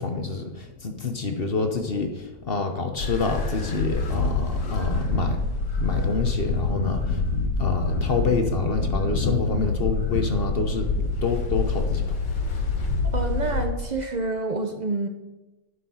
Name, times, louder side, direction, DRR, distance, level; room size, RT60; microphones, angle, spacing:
voice 1, 0.0-5.4 5.8-7.2 7.6-10.9 11.2-12.2, left 4 dB, 45° left, 5 dB, 0.8 m, -27 dB
sound 1, 3.0-13.6, left 3 dB, 70° left, 2.0 m, -26 dB
voice 2, 13.1-15.1, right 2 dB, 65° right, 5 dB, 0.4 m, -28 dB
11.0 x 6.4 x 5.5 m, 1.1 s
omnidirectional pair, 1.9 m